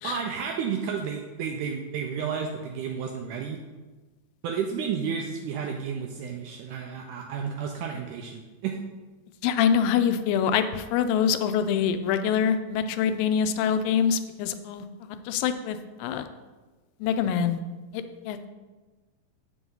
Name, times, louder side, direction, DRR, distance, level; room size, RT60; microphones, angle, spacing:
voice 1, 0.0-3.6 4.4-8.8, right 6 dB, 85° right, 1 dB, 1.9 m, -32 dB
voice 2, 9.4-16.3 17.0-17.6 17.9-18.5, left 7 dB, 85° left, 9 dB, 2.2 m, -25 dB
7.8 x 6.2 x 3.9 m, 1.3 s
omnidirectional pair, 4.1 m